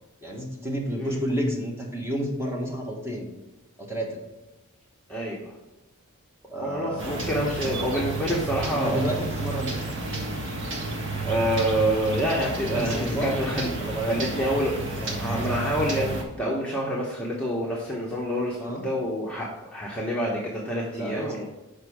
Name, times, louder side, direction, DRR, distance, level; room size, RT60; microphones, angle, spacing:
voice 1, 0.2-3.3 3.8-4.2 6.5-7.3 8.7-9.8 12.7-13.4 13.8-14.2 18.6-18.8 20.9-21.4, equal, 10° right, -2 dB, 1.3 m, -30 dB
voice 2, 5.1-5.5 6.6-9.2 11.3-13.7 14.0-18.6 18.8-19.5 19.7-21.4, equal, 5° left, -5 dB, 0.9 m, -27 dB
sound 1, 7.0-16.2, right 2 dB, 55° right, 1.3 m, -31 dB
6.6 x 5.1 x 4.8 m, 1.0 s
head